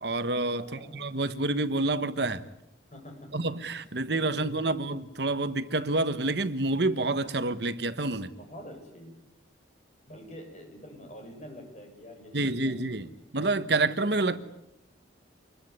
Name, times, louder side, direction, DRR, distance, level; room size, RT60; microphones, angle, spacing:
voice 1, 0.0-2.4 3.3-8.3 12.3-14.4, right 2 dB, 60° right, 1.3 m, -28 dB
voice 2, 0.6-1.0 2.9-3.6 4.0-4.8 8.3-9.2 10.1-13.1, equal, 40° left, 7.7 m, -47 dB
26.5 x 21.5 x 9.6 m
head